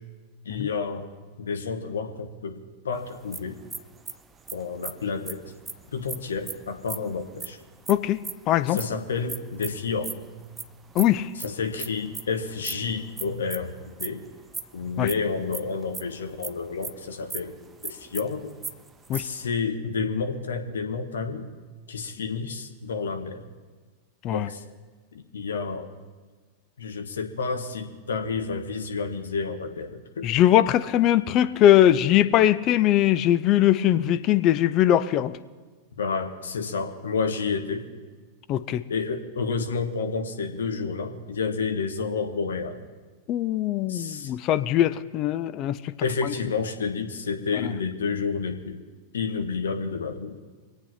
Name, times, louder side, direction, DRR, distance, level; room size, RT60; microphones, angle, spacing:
voice 1, 0.4-1.1 1.4-2.6 2.8-3.6 4.5-5.5 5.9-7.6 8.7-10.1 11.3-14.2 14.7-18.5 19.1-21.5 21.9-23.5 24.3-24.6 25.1-25.9 26.8-30.3 36.0-37.9 38.9-42.8 43.9-44.3 46.0-48.8 49.1-50.4, left 5 dB, 65° left, 5 dB, 1.5 m, -30 dB
sound 1, 3.1-8.8 9.3-16.5 16.8-16.9 17.2-17.4 17.7-19.4, right 4 dB, 15° right, 0.8 m, -37 dB
voice 2, 7.9-8.2 8.5-8.8 10.9-11.3 15.0-15.1 19.1-19.2 24.2-24.5 30.2-35.4 38.5-38.8 43.3-45.9 46.2-46.3 47.6-47.7, left 12 dB, 35° left, 13 dB, 0.6 m, -21 dB
24.5 x 8.4 x 5.8 m, 1.4 s
figure-of-eight pair, 90°, 0 cm